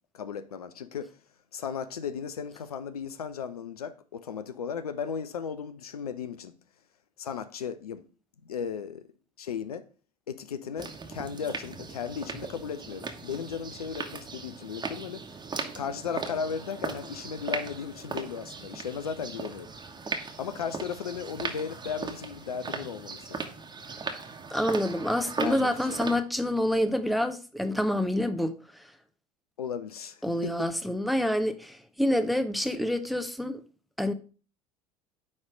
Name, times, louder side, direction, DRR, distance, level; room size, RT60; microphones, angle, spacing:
voice 1, 0.1-1.2 1.5-6.6 7.2-8.0 8.4-9.0 9.4-9.8 10.3-15.2 15.7-19.7 20.4-23.4 25.4-26.0 29.6-30.7 32.6-32.7, left 7 dB, 80° left, 0.5 m, -36 dB
sound 1, 10.8-26.2, right 4 dB, 25° right, 1.3 m, -38 dB
voice 2, 24.5-28.5 30.2-33.6 34.0-34.1, left 1 dB, ahead, 0.7 m, -27 dB
9.5 x 3.2 x 4.9 m
figure-of-eight pair, 70°, 19 cm